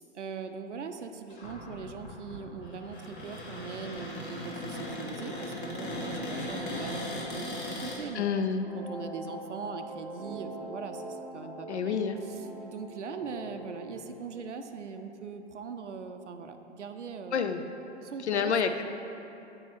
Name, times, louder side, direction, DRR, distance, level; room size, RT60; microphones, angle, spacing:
voice 1, 0.1-7.1 7.3-8.3 8.7-17.5 18.0-18.5, right 5 dB, 85° right, 7 dB, 0.5 m, -41 dB
Cupboard open or close, 1.3-8.0, left 1 dB, 45° left, 1.3 m, -38 dB
sound 1, 4.8-13.9, equal, ahead, 0.8 m, -44 dB
voice 2, 8.1-8.6 11.7-12.2 17.3-17.6 18.2-18.8, left 6 dB, 75° left, 8 dB, 0.5 m, -28 dB
7.6 x 4.6 x 3.0 m, 2.9 s
figure-of-eight pair, 110°, 35 cm